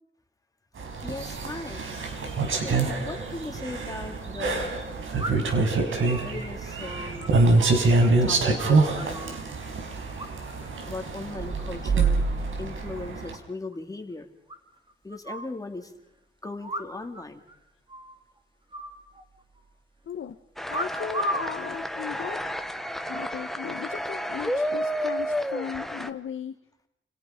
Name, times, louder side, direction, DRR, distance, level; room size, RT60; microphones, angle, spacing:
sound 1, 0.8-13.3, right 3 dB, 85° right, 5.3 m, -25 dB
voice 1, 1.0-1.8 2.6-4.7 6.2-9.4 10.9-12.2 12.6-14.3 15.0-15.9 16.4-17.4, left 2 dB, 15° left, 5 dB, 2.8 m, -38 dB
sound 2, 3.4-3.5 5.2-5.6 6.1-8.1 8.3-9.4 10.2-10.7 11.0-11.4 11.8-12.3 12.6-12.7 12.9-13.0 13.3-13.4 13.7-13.8 14.5-15.5 16.6-17.2 17.5-17.6 17.9-18.2 18.7-19.6 20.7-21.6 22.3-22.7, equal, 25° right, 2.7 m, -36 dB
sound 3, 20.6-26.1, equal, ahead, 1.3 m, -31 dB
voice 2, 20.7-22.4 23.0-26.5, left 8 dB, 80° left, 5 dB, 1.5 m, -36 dB
29.5 x 29.0 x 5.3 m, 0.81 s
wide cardioid pair, 175°, 20 cm